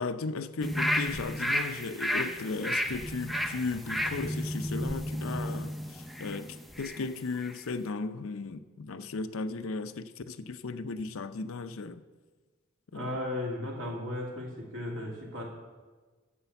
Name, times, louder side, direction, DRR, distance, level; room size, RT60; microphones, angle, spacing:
voice 1, 0.0-12.0 12.9-13.2, left 3 dB, 80° left, 0.6 m, -36 dB
sound 1, 0.6-7.0 7.4-7.5, equal, ahead, 0.5 m, -32 dB
voice 2, 12.9-15.4, left 1 dB, 65° right, 2.7 m, -35 dB
10.0 x 7.8 x 6.9 m
head